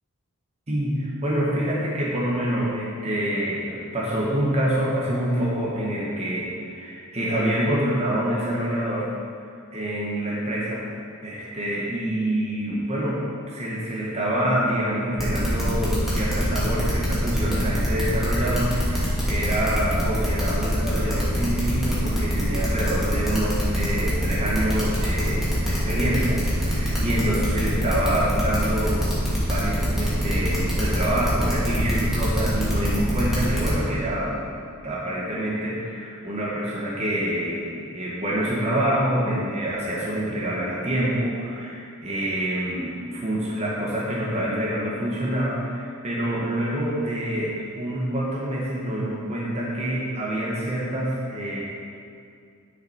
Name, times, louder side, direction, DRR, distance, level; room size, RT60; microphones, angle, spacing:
voice 1, 0.7-9.1 9.7-10.8 11.2-29.1 29.5-34.4 34.8-51.6, right 1 dB, 30° right, -6 dB, 1.4 m, -26 dB
sound 1, 15.2-33.7, equal, ahead, 2.1 m, -24 dB
10.0 x 5.9 x 4.4 m, 2.4 s
head